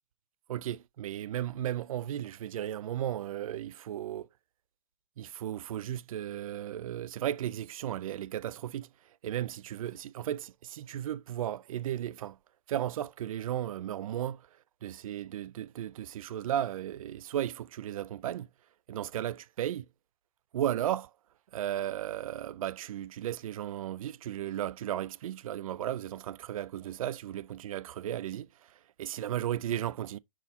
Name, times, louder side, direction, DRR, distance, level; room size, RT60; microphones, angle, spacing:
voice 1, 0.5-4.3 5.2-8.9 9.2-12.4 12.7-14.4 14.8-18.5 18.9-19.9 20.5-21.1 21.5-30.2, right 11 dB, 60° right, 0.4 m, -35 dB
6.0 x 4.1 x 4.2 m
hypercardioid pair, 180°, 20 cm